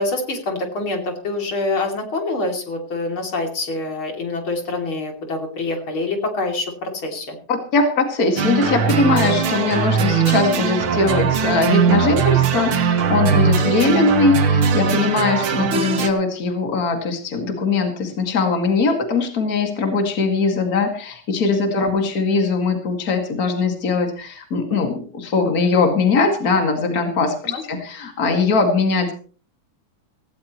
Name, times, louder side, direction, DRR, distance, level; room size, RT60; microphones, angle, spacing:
voice 1, 0.0-7.4 15.6-15.8 27.5-27.6, left 2 dB, 80° left, 3 dB, 3.9 m, -26 dB
voice 2, 7.5-29.1, left 3 dB, 45° left, 4 dB, 2.7 m, -20 dB
sound 1, 8.4-16.1, right 6 dB, 85° right, 2.3 m, -20 dB
17.5 x 16.5 x 3.1 m, 0.41 s
omnidirectional pair, 2.2 m